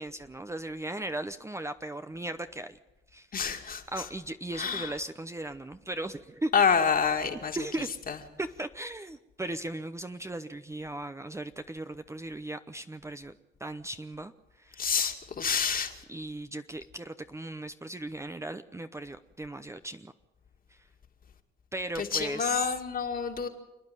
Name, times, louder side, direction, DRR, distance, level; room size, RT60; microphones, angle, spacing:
voice 1, 0.0-2.8 3.1-3.3 3.9-6.5 7.6-7.9 8.4-13.3 13.6-14.3 14.6-14.9 16.1-20.1 20.7-20.8 21.7-22.7, right 1 dB, 15° right, 10 dB, 0.8 m, -37 dB
voice 2, 3.3-4.1 4.5-5.0 6.5-7.7 8.1-8.2 14.8-16.0 21.9-23.5, left 6 dB, 45° left, 4 dB, 2.3 m, -28 dB
28.5 x 9.8 x 9.5 m, 1.0 s
cardioid pair, 90°, 20 cm